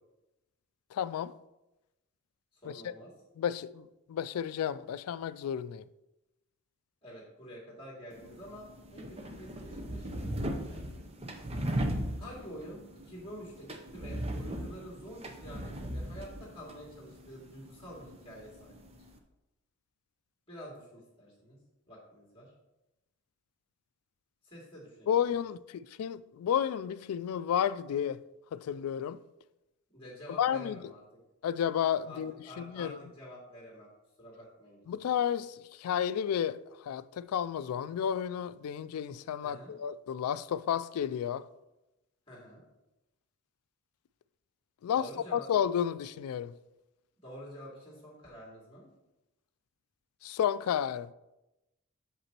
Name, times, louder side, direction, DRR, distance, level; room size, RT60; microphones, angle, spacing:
voice 1, 0.9-1.3 2.8-2.9 3.4-3.8 4.1-5.8 25.1-28.2 28.5-29.2 30.4-30.9 31.4-32.3 32.6-33.0 34.9-35.5 35.8-36.6 36.9-41.4 44.8-46.5 50.2-51.1, left 9 dB, 85° left, 0.3 m, -31 dB
voice 2, 2.5-3.1 7.0-8.7 8.9-10.9 12.2-19.0 20.5-21.6 21.9-22.5 24.4-25.1 29.9-31.0 32.0-33.9 34.2-34.8 39.4-39.7 42.3-42.6 44.9-45.5 47.2-48.9, equal, 25° left, 2.5 m, -48 dB
sound 1, 8.1-19.2, right 1 dB, 25° right, 0.6 m, -38 dB
7.9 x 6.8 x 2.9 m
head